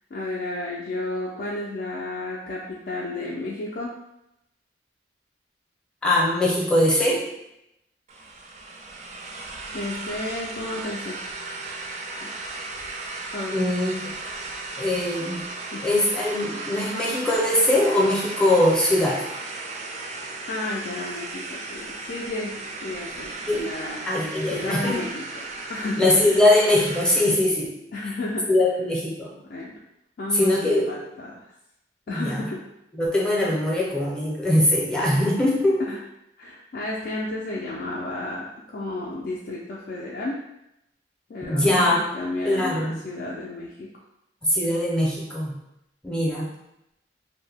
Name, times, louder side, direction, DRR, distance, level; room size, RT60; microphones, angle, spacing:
voice 1, 0.1-3.9 9.7-11.2 12.2-12.3 13.3-13.5 15.7-15.9 20.5-24.0 24.5-26.4 27.9-28.5 29.5-29.8 30.2-31.5 32.1-32.7 35.8-36.0 36.4-40.4 41.3-44.0, left 2 dB, 55° left, -4 dB, 0.4 m, -32 dB
voice 2, 6.0-7.2 13.5-14.1 14.8-15.4 15.8-19.2 23.5-23.7 24.0-25.0 26.0-27.7 28.5-29.4 30.3-30.9 32.1-32.5 32.9-35.8 41.5-42.0 42.4-43.0 44.4-45.6 46.0-46.5, left 1 dB, 5° left, -4 dB, 0.6 m, -21 dB
sound 1, 8.1-27.4, right 3 dB, 40° right, 0.3 m, -36 dB
2.6 x 2.1 x 3.3 m, 0.85 s
head